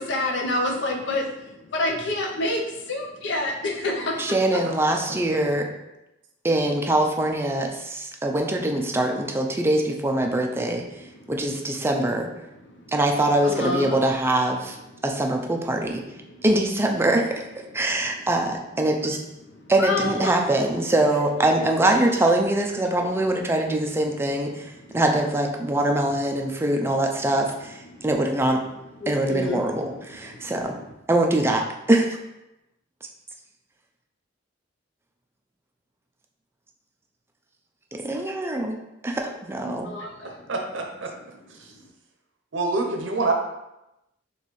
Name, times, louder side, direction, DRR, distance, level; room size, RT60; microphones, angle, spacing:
voice 1, 0.0-4.6 12.8-12.9 13.4-14.0 16.3-16.4 19.8-20.3 27.9-28.0 29.0-29.6 30.3-30.5 39.6-40.4, left 2 dB, 70° left, 1 dB, 0.7 m, -28 dB
voice 2, 4.2-5.6 6.4-12.3 12.9-14.8 15.0-16.0 16.4-17.4 17.7-19.2 19.7-28.6 29.1-30.8 31.1-32.2 38.0-38.8 39.0-39.9, right 1 dB, 15° right, 2 dB, 0.4 m, -23 dB
voice 3, 40.2-41.1 42.5-43.3, right 3 dB, 75° right, 2 dB, 0.6 m, -26 dB
4.2 x 3.1 x 3.1 m, 0.93 s
head